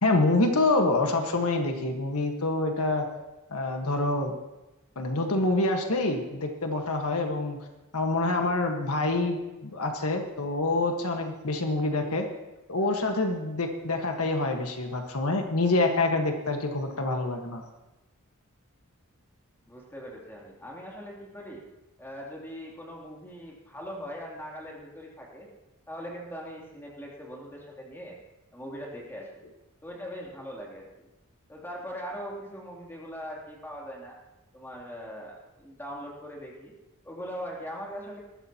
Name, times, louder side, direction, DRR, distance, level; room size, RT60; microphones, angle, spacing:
voice 1, 0.0-3.1 3.5-4.3 4.9-7.6 7.9-12.3 12.7-17.6, left 2 dB, 85° left, 4 dB, 1.5 m, -26 dB
voice 2, 19.7-21.6 22.0-25.5 25.9-28.2 28.5-29.3 29.8-31.1 31.5-34.2 34.5-36.7 37.0-38.2, equal, 10° left, -3 dB, 3.0 m, -40 dB
19.5 x 14.0 x 3.0 m, 1.0 s
head